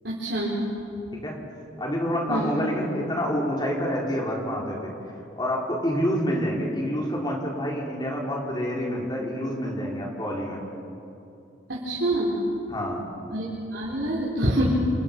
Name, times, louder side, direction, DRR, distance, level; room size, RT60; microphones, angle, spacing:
voice 1, 0.0-0.5 2.3-2.5 11.7-12.3 13.3-14.6, right 1 dB, 60° right, -6 dB, 4.5 m, -26 dB
voice 2, 1.8-4.9 5.4-10.6 12.7-13.0, equal, 20° left, -2 dB, 4.4 m, -27 dB
28.5 x 28.5 x 5.5 m, 2.8 s
head